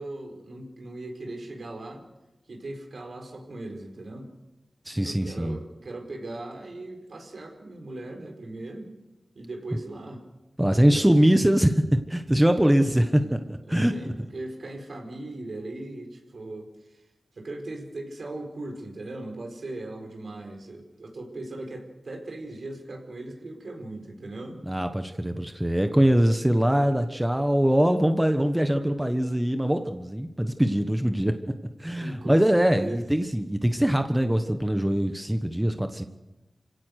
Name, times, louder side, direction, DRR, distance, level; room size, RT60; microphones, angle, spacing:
voice 1, 0.0-2.0 2.5-4.3 5.0-8.9 9.3-10.2 10.7-11.1 12.8-13.3 13.6-17.0 17.3-24.6 27.0-27.1 32.0-33.0, right 2 dB, 70° right, 3 dB, 4.6 m, -39 dB
voice 2, 4.8-5.6 10.6-13.9 24.7-31.3 31.8-36.1, equal, 10° right, 7 dB, 1.2 m, -22 dB
27.5 x 17.0 x 6.5 m, 1.0 s
wide cardioid pair, 75°, 0 cm